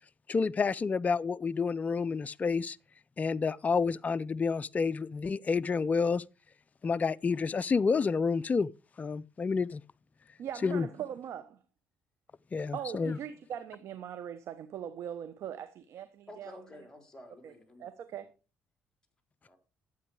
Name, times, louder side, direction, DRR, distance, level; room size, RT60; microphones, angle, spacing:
voice 1, 0.3-2.8 3.2-6.2 6.8-8.7 9.0-9.8 10.6-10.9 12.5-13.2, left 5 dB, 30° left, 0.4 m, -29 dB
voice 2, 10.4-11.6 12.7-16.6 17.4-17.5 17.8-18.3, right 9 dB, 70° right, 1.0 m, -40 dB
voice 3, 16.3-17.9 19.5-19.6, left 1 dB, 15° left, 4.0 m, -50 dB
12.0 x 8.3 x 4.8 m
supercardioid pair, 75°, 5 cm